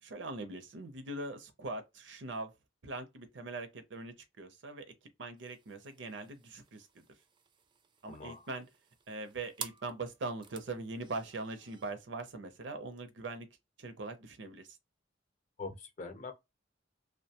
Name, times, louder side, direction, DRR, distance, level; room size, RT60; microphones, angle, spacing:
voice 1, 0.0-2.5 2.8-4.9 5.2-7.0 8.0-8.7 9.1-13.5 13.8-14.7, right 2 dB, 70° right, 0.6 m, -41 dB
sound 1, 5.4-11.9, right 6 dB, 25° right, 0.3 m, -51 dB
voice 2, 8.1-8.4 15.6-16.3, left 3 dB, 40° left, 0.6 m, -43 dB
2.5 x 2.1 x 2.8 m
head